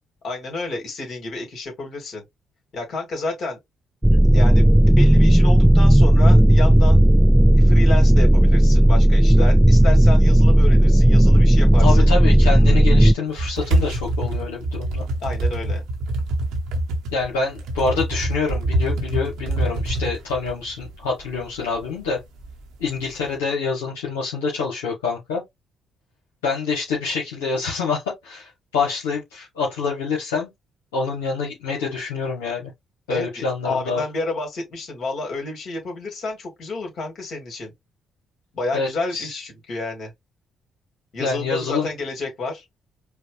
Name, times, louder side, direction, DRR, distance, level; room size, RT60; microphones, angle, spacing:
voice 1, 0.2-2.2 2.7-3.6 4.3-7.0 7.6-12.1 15.2-15.8 33.1-37.7 38.5-40.1 41.1-42.6, left 3 dB, 60° left, 2.3 m, -30 dB
sound 1, 4.0-13.1, right 1 dB, 5° right, 0.4 m, -13 dB
voice 2, 11.8-15.0 17.1-22.2 22.8-25.4 26.4-30.5 30.9-32.7 33.1-34.0 38.7-39.4 41.2-41.9, left 4 dB, 85° left, 1.2 m, -26 dB
sound 2, 13.3-23.2, right 1 dB, 75° right, 1.0 m, -25 dB
4.9 x 2.4 x 3.2 m
hypercardioid pair, 50°, 0 cm